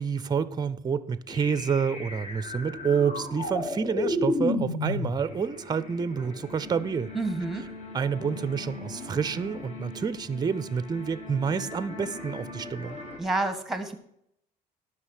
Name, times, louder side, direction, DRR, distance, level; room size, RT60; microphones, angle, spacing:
voice 1, 0.0-7.1 7.9-13.0, right 6 dB, 25° right, 0.6 m, -28 dB
sound 1, 1.3-13.2, left 2 dB, 45° left, 2.6 m, -35 dB
voice 2, 7.1-7.7 13.2-14.0, right 2 dB, ahead, 1.5 m, -29 dB
11.0 x 6.0 x 6.5 m
cardioid pair, 110°, 17 cm